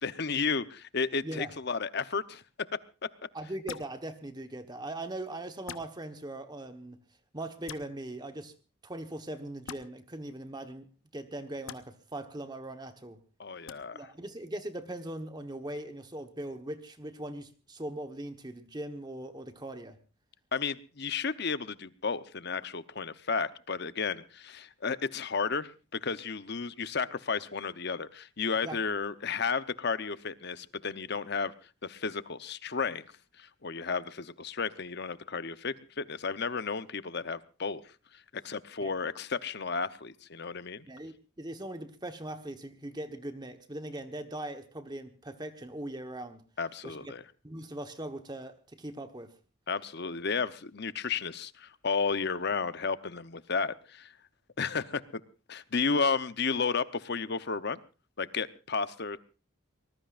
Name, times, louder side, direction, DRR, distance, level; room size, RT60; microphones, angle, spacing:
voice 1, 0.0-2.4 13.4-14.0 20.5-25.7 26.0-31.5 31.8-33.1 33.4-37.8 38.1-40.8 46.6-47.2 49.7-54.1 54.6-55.2 55.5-57.8 58.2-59.2, left 5 dB, 50° left, 13 dB, 0.9 m, -33 dB
voice 2, 1.2-1.5 3.3-7.0 7.3-8.5 8.8-10.9 11.1-13.2 13.9-20.0 28.6-28.8 38.8-38.9 40.9-46.4 46.8-47.1 47.4-49.3, right 1 dB, 20° right, 8 dB, 1.2 m, -40 dB
sound 1, 3.7-3.9 5.7-5.9 7.7-7.8 9.7-9.8 11.7-11.8 13.7-13.8, left 6 dB, 80° left, 1.1 m, -41 dB
23.5 x 20.5 x 2.5 m, 0.34 s
head